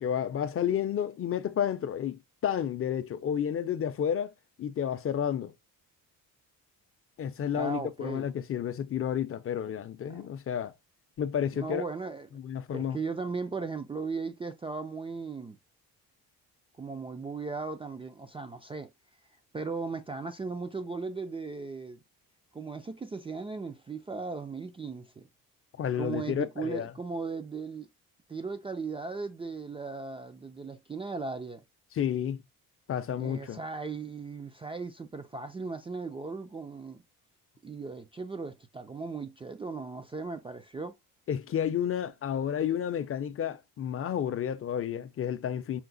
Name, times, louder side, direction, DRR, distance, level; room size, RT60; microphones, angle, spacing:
voice 1, 0.0-4.3 4.6-5.5 7.2-10.7 11.2-11.8 12.4-13.0 25.8-26.9 31.9-32.4 32.9-33.6 41.3-45.8, left 9 dB, 40° left, 0.5 m, -31 dB
voice 2, 7.5-8.3 10.1-10.3 11.5-12.3 12.7-15.6 16.8-18.9 19.5-22.0 22.5-25.3 26.0-27.9 28.3-31.6 33.2-37.0 37.6-40.9, right 4 dB, 15° right, 0.3 m, -37 dB
5.8 x 2.1 x 3.8 m
cardioid pair, 130°, 35 cm